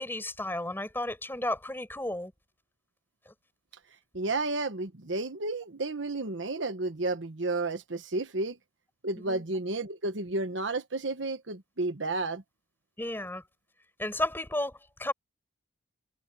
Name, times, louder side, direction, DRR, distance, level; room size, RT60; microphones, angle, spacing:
voice 1, 0.0-2.3 9.3-9.4 13.0-13.4 14.0-15.1, left 1 dB, 10° left, 5.3 m, -33 dB
voice 2, 4.1-8.6 9.0-12.4, right 2 dB, 70° right, 1.2 m, -32 dB
head